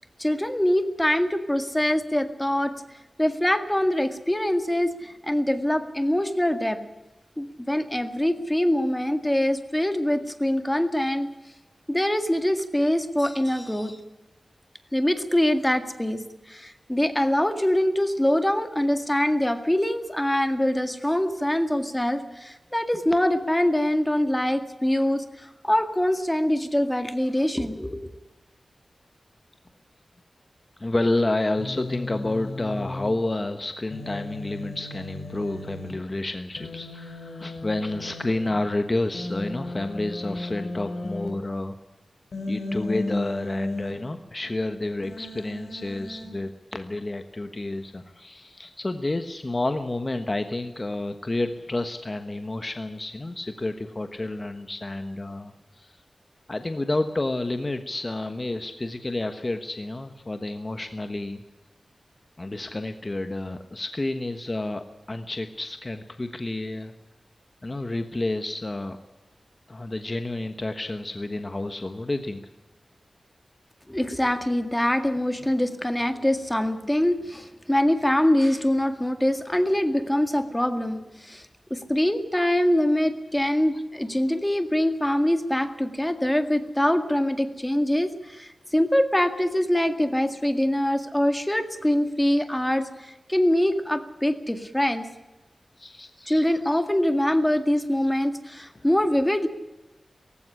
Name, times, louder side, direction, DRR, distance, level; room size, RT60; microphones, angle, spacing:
voice 1, 0.2-2.7 3.2-6.8 7.4-11.3 11.9-14.0 14.9-28.1 73.9-95.1 96.2-99.5, left 1 dB, 10° left, 8 dB, 1.9 m, -24 dB
voice 2, 30.8-41.7 42.5-55.9 56.5-61.4 62.4-66.9 67.6-69.0 69.7-72.4 95.8-96.5, left 2 dB, 30° left, 7 dB, 1.3 m, -30 dB
Human voice, 31.6-33.1 33.9-35.9 36.6-38.5 39.1-41.3 42.3-43.9 45.0-46.3, left 2 dB, 85° left, 4.5 m, -34 dB
18.0 x 16.0 x 10.0 m, 1.0 s
wide cardioid pair, 90°, 0 cm